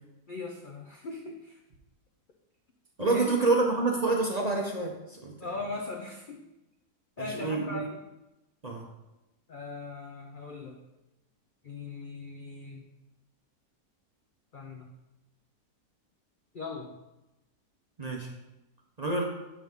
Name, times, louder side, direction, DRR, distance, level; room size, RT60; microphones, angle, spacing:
voice 1, 0.3-1.6 3.0-3.3 5.4-6.4 7.2-8.0 9.5-10.8 11.6-12.9 14.5-14.9 16.5-16.9, left 3 dB, 60° left, 1 dB, 0.5 m, -39 dB
voice 2, 3.0-5.0 5.2-5.3 7.2-7.8 8.6-8.8 18.0-18.3 19.0-19.2, right 3 dB, 35° right, -1 dB, 0.7 m, -27 dB
7.4 x 6.0 x 3.6 m, 0.96 s
omnidirectional pair, 1.7 m